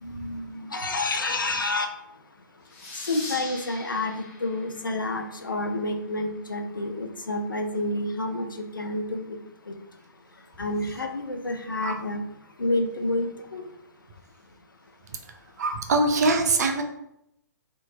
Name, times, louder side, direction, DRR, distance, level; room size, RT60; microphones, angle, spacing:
voice 1, 0.0-1.9 3.1-9.4 9.7-9.8 10.6-12.2 12.6-13.7, left 2 dB, 80° left, 0.4 m, -29 dB
sound 1, 2.7-5.9, left 2 dB, 45° left, 0.8 m, -42 dB
voice 2, 15.6-16.8, right 2 dB, 55° right, 0.5 m, -23 dB
2.7 x 2.4 x 2.7 m
figure-of-eight pair, 120°, 11 cm